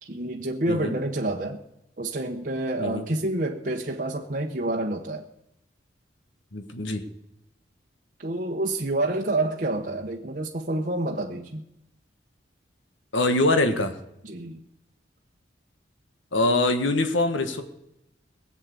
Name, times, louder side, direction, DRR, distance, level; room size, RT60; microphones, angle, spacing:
voice 1, 0.0-1.6 2.0-5.2 8.2-11.6 14.2-14.6, right 2 dB, 45° right, 1 dB, 0.9 m, -28 dB
voice 2, 6.5-7.0 13.1-13.9 16.3-17.6, left 2 dB, 80° left, 8 dB, 1.4 m, -23 dB
18.5 x 7.4 x 8.2 m, 0.84 s
head